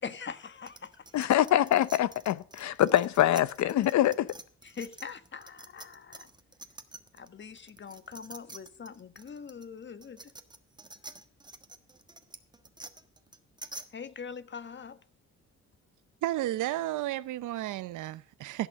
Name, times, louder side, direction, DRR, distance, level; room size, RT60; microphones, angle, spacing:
voice 1, 0.0-1.3 4.6-6.3 7.1-10.3 13.9-15.0, left 6 dB, 40° left, 1.3 m, -43 dB
sound 1, 0.7-7.3 7.6-13.9, right 2 dB, 15° right, 1.3 m, -47 dB
voice 2, 1.1-4.3, left 12 dB, 65° left, 0.7 m, -24 dB
voice 3, 16.2-18.7, right 15 dB, 85° right, 0.7 m, -32 dB
16.0 x 6.1 x 7.4 m
cardioid pair, 90°, 30 cm